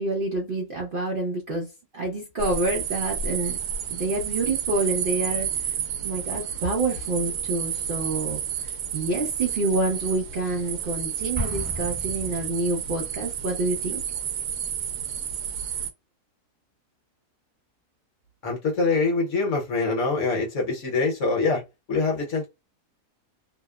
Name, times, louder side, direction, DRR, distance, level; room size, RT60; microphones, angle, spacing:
voice 1, 0.0-3.6 3.9-5.5 6.0-8.4 8.9-14.0, right 2 dB, 50° right, 0.6 m, -27 dB
sound 1, 2.4-15.9, right 8 dB, 80° right, 1.1 m, -31 dB
Explosion, 11.3-13.1, left 2 dB, 10° left, 0.8 m, -34 dB
voice 2, 18.4-21.6 21.9-22.5, left 3 dB, 60° left, 1.1 m, -24 dB
2.8 x 2.0 x 2.3 m
omnidirectional pair, 1.6 m